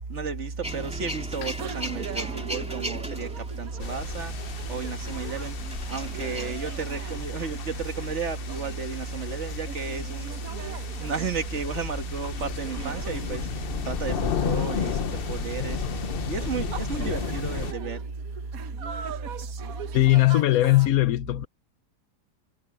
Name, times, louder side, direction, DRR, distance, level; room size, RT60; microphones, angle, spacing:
voice 1, 0.1-4.3 4.7-5.5 5.9-10.3 11.0-13.5 13.8-15.8 16.3-18.1, right 4 dB, 45° right, 1.8 m, -32 dB
Male speech man speaking / Vehicle / Engine starting, 0.6-6.5, equal, 5° right, 2.5 m, -38 dB
sound 1, 1.3-20.9, right 7 dB, 60° right, 1.4 m, -42 dB
sound 2, 3.8-17.7, left 7 dB, 45° left, 0.8 m, -34 dB
voice 2, 19.9-21.5, left 17 dB, 65° left, 1.1 m, -19 dB
omnidirectional pair, 1.7 m